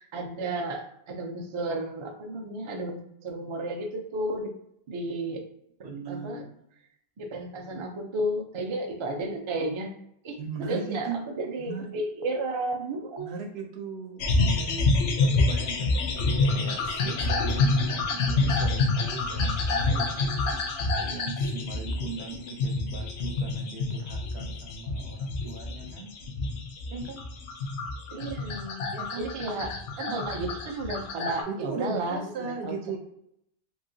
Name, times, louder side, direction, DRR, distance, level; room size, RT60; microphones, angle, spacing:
voice 1, 0.0-4.5 4.9-5.4 5.8-6.4 7.2-9.9 10.2-13.3 28.1-28.8 29.2-32.8, right 2 dB, 45° right, 3 dB, 0.4 m, -33 dB
voice 2, 5.8-6.6 10.4-11.2 11.6-11.9 13.2-14.2 14.5-20.7 21.0-26.1 26.9-27.2 28.9-29.3 30.1-30.2 31.5-33.0, right 4 dB, 75° right, 3 dB, 0.9 m, -38 dB
sound 1, 14.2-31.4, left 3 dB, 85° left, 0.9 m, -27 dB
3.1 x 2.8 x 2.6 m, 0.75 s
omnidirectional pair, 1.1 m